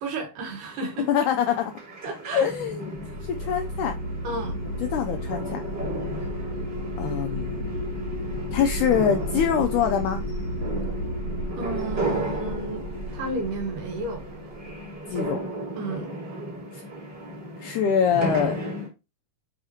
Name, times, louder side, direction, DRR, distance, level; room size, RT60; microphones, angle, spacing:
voice 1, 0.0-1.1 2.0-2.5 4.2-4.6 11.5-12.8 13.1-14.3 15.8-16.1, right 2 dB, 70° right, 3.0 m, -32 dB
sound 1, 0.7-18.9, right 1 dB, 30° right, 2.9 m, -35 dB
voice 2, 1.1-1.7 2.3-2.9 3.3-3.9 4.8-5.6 7.0-7.6 8.5-10.2 15.1-15.4 16.7-16.8 17.6-18.6, left 8 dB, 85° left, 1.8 m, -24 dB
sound 2, 2.9-15.2, equal, 50° right, 1.0 m, -32 dB
6.5 x 5.6 x 2.8 m
omnidirectional pair, 4.2 m